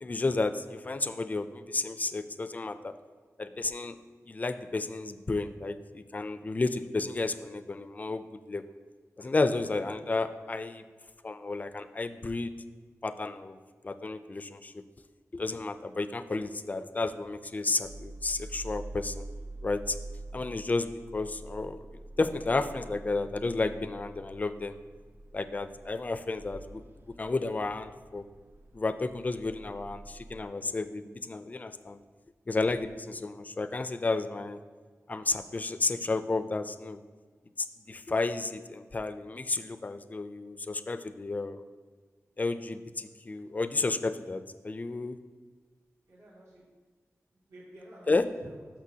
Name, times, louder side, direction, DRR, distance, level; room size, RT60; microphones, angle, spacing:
voice 1, 0.0-2.9 3.4-4.0 4.3-8.6 9.2-10.8 11.2-12.5 13.0-13.6 13.8-14.8 15.3-19.3 19.6-20.0 20.3-24.8 25.3-26.8 27.2-28.2 28.7-32.0 32.5-34.6 35.1-37.0 37.6-41.6 42.4-45.2 48.1-48.3, left 3 dB, 30° left, 11 dB, 0.4 m, -32 dB
sound 1, 17.8-30.4, right 1 dB, 40° right, 0.5 m, -46 dB
voice 2, 46.1-46.7 47.3-48.7, equal, 75° right, -8 dB, 2.3 m, -51 dB
12.0 x 5.9 x 2.8 m, 1.5 s
wide cardioid pair, 110°, 5 cm